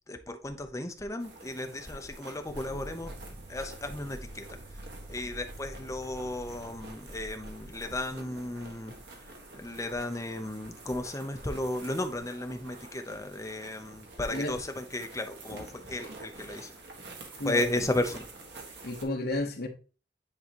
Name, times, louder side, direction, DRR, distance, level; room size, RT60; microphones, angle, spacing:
voice 1, 0.1-3.1 3.5-4.6 5.1-8.9 9.3-16.7 17.4-18.3, left 1 dB, 20° left, 0.8 m, -34 dB
sound 1, 1.2-19.0, right 2 dB, 70° right, 1.7 m, -48 dB
sound 2, 2.5-10.1, right 1 dB, 15° right, 0.9 m, -47 dB
voice 2, 18.8-19.7, left 2 dB, 60° left, 1.2 m, -31 dB
9.7 x 3.9 x 3.0 m
head